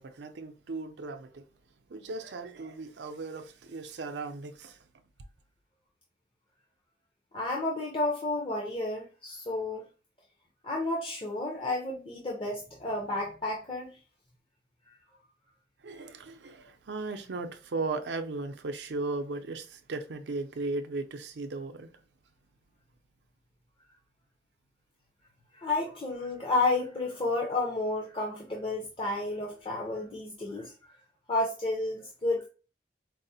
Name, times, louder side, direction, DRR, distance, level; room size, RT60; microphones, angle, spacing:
voice 1, 0.0-1.5 1.9-4.8 15.8-21.9, right 3 dB, 80° right, 0.5 m, -36 dB
voice 2, 7.3-9.9 10.6-14.0 14.9-15.0 25.5-31.0 31.3-32.5, left 2 dB, 30° left, 0.6 m, -31 dB
4.7 x 2.0 x 2.7 m
head